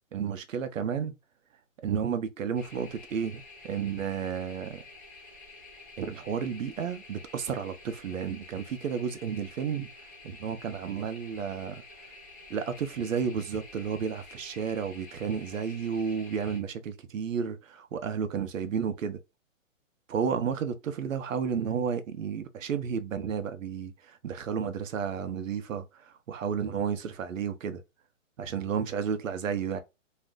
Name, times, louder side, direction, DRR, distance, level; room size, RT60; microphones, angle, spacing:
voice 1, 0.1-1.2 1.8-4.8 6.0-9.9 10.2-11.8 12.5-19.2 20.1-27.8 28.4-29.8, right 7 dB, 75° right, 0.7 m, -32 dB
sound 1, 2.5-16.6, left 2 dB, 10° left, 0.5 m, -50 dB
2.4 x 2.1 x 3.6 m
hypercardioid pair, 165°, 39 cm